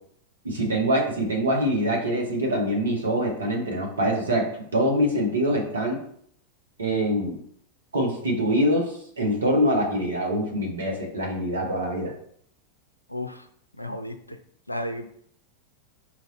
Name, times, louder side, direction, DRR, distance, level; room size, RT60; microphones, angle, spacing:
voice 1, 0.4-6.0 6.8-7.4 7.9-12.1, equal, 70° right, 0 dB, 1.1 m, -24 dB
voice 2, 13.1-13.5 13.8-14.4 14.7-15.1, left 1 dB, 90° left, 7 dB, 0.4 m, -33 dB
4.6 x 2.6 x 3.9 m, 0.64 s
figure-of-eight pair, 90°, 0 cm